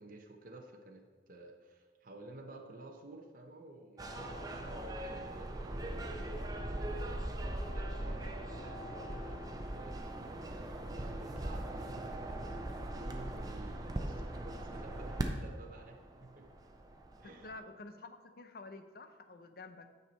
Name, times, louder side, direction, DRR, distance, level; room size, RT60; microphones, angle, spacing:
voice 1, 0.0-16.5 17.2-17.5, right 2 dB, 50° right, 2 dB, 0.8 m, -52 dB
sound 1, 4.0-17.6, right 1 dB, 20° right, 0.6 m, -40 dB
voice 2, 17.2-19.9, left 3 dB, 55° left, 8 dB, 0.6 m, -50 dB
9.1 x 5.7 x 4.1 m, 1.4 s
head